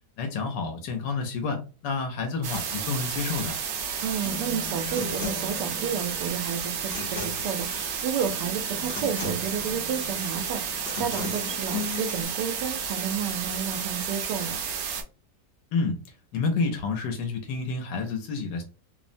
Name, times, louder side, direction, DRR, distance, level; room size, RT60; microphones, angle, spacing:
voice 1, 0.2-3.6 15.7-16.0 16.3-18.6, left 4 dB, 85° left, 4 dB, 1.3 m, -29 dB
sound 1, 2.4-15.0, right 7 dB, 70° right, 1.0 m, -32 dB
voice 2, 4.0-14.6, right 7 dB, 85° right, 7 dB, 1.2 m, -31 dB
Human voice / Acoustic guitar, 4.3-12.2, left 2 dB, 55° left, 0.7 m, -37 dB
3.2 x 2.0 x 2.5 m, 0.33 s
omnidirectional pair, 1.8 m